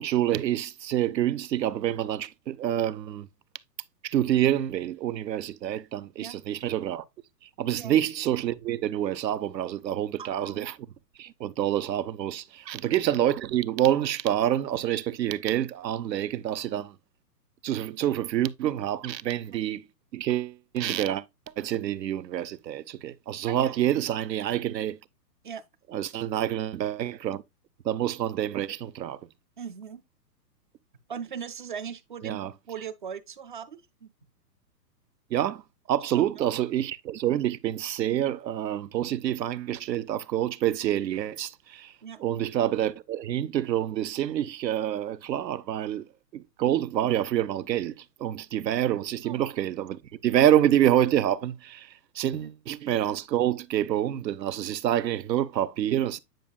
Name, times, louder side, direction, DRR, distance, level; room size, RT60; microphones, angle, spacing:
voice 1, 0.0-3.3 4.0-7.0 7.6-10.8 11.2-17.0 17.6-19.9 20.1-21.2 21.6-25.0 25.9-27.4 27.8-29.2 32.2-32.5 35.3-35.6 35.9-41.9 42.2-46.1 46.3-56.2, right 11 dB, 85° right, 0.8 m, -27 dB
voice 2, 10.2-10.7 12.8-13.0 19.5-19.6 23.5-23.8 24.1-24.2 25.4-25.7 29.6-30.0 31.1-34.1 36.1-36.3 42.0-42.2 49.2-49.4 52.4-52.5, right 7 dB, 35° right, 0.4 m, -40 dB
9.1 x 5.2 x 2.2 m
hypercardioid pair, 155°, 49 cm